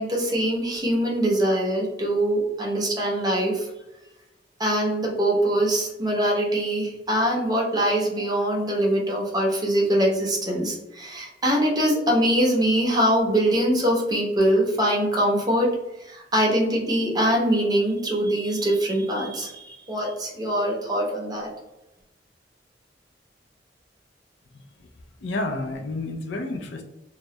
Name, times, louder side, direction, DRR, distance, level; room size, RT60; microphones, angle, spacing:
voice 1, 0.0-3.7 4.6-15.7 16.0-21.5, right 1 dB, 25° right, -2 dB, 0.6 m, -23 dB
voice 2, 25.2-26.8, left 2 dB, 80° left, 4 dB, 0.4 m, -30 dB
2.2 x 2.0 x 2.7 m, 0.96 s
head